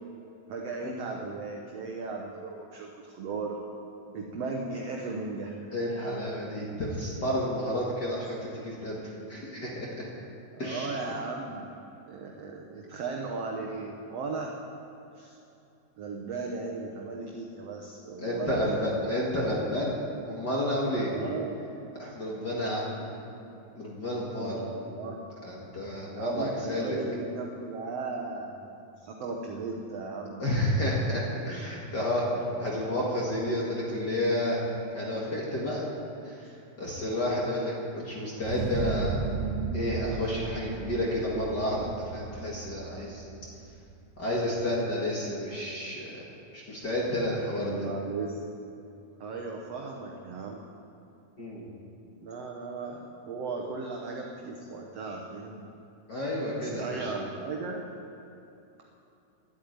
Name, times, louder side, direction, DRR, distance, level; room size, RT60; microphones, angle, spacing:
voice 1, 0.5-3.6 4.1-5.6 10.5-11.7 12.1-14.6 15.1-15.4 16.0-18.8 21.1-21.7 24.4-25.2 26.2-28.6 29.0-30.4 47.6-48.4 49.2-50.6 52.2-55.7 56.8-57.9, right 4 dB, 85° right, 1 dB, 1.4 m, -36 dB
voice 2, 5.7-9.0 9.3-10.1 10.6-11.2 18.2-20.0 20.3-21.1 22.0-23.1 23.7-24.6 25.4-27.0 30.4-34.6 34.9-35.8 36.2-39.2 39.7-43.2 44.2-46.2 46.5-47.8 51.4-51.7 56.1-57.1, left 1 dB, 40° left, -5 dB, 1.7 m, -31 dB
sound 1, 38.4-43.9, right 4 dB, 65° right, 2.0 m, -35 dB
11.5 x 8.4 x 9.3 m, 2.8 s
omnidirectional pair, 4.2 m